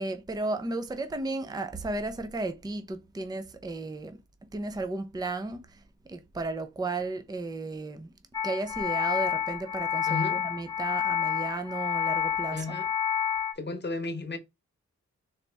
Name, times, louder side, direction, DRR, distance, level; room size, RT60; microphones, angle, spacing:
voice 1, 0.0-4.2 4.5-5.8 6.1-8.1 8.4-12.7, right 2 dB, 15° right, 0.6 m, -34 dB
sound 1, 8.3-13.5, left 8 dB, 10° left, 0.9 m, -29 dB
voice 2, 10.1-10.4 12.5-12.9 13.6-14.4, left 3 dB, 35° left, 1.0 m, -33 dB
4.0 x 2.9 x 3.4 m
cardioid pair, 70°, 30 cm